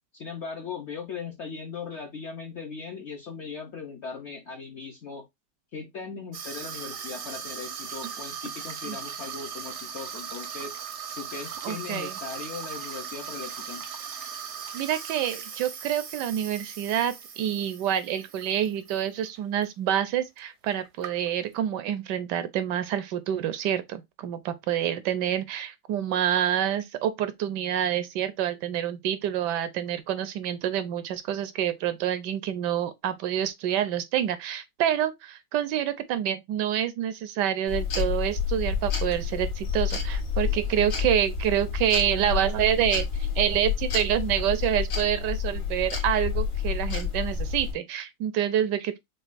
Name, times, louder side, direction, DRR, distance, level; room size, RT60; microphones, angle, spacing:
voice 1, 0.1-5.2 5.7-10.7 11.2-13.8, left 5 dB, 60° left, 0.7 m, -38 dB
Water tap faucet / Sink (filling or washing), 6.3-19.0 19.3-19.6 20.4-20.5 20.6-21.5, right 7 dB, 60° right, 0.7 m, -38 dB
voice 2, 11.6-12.2 14.7-49.0, right 10 dB, 75° right, 1.2 m, -27 dB
sound 1, 37.7-47.7, left 6 dB, 75° left, 2.2 m, -29 dB
6.2 x 2.3 x 2.5 m
omnidirectional pair, 1.9 m